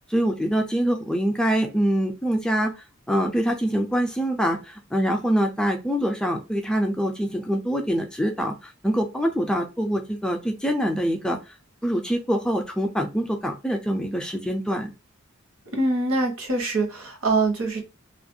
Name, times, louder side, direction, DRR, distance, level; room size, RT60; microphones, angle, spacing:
voice 1, 0.1-2.7 3.1-11.4 11.8-14.9, equal, 5° left, 3 dB, 0.3 m, -24 dB
voice 2, 15.7-17.8, right 2 dB, 75° right, 2 dB, 1.0 m, -24 dB
2.4 x 2.2 x 2.6 m, 0.29 s
head